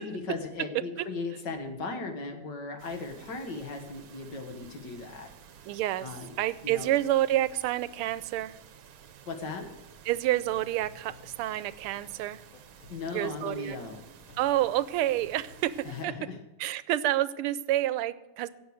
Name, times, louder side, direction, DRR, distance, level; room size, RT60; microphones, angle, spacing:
voice 1, 0.0-5.3 6.0-6.3 6.6-6.9 9.3-9.7 12.9-14.0 15.8-16.4, left 3 dB, 55° left, 5 dB, 2.1 m, -37 dB
sound 1, 2.8-16.0, right 8 dB, 70° right, 1.7 m, -53 dB
voice 2, 5.7-6.1 6.4-8.6 10.1-12.4 13.1-13.8 14.4-16.1 16.6-18.5, right 14 dB, 90° right, 16 dB, 1.5 m, -28 dB
sound 2, 10.2-15.7, left 5 dB, 80° left, 2.0 m, -56 dB
17.0 x 6.6 x 6.4 m, 1.1 s
omnidirectional pair, 2.4 m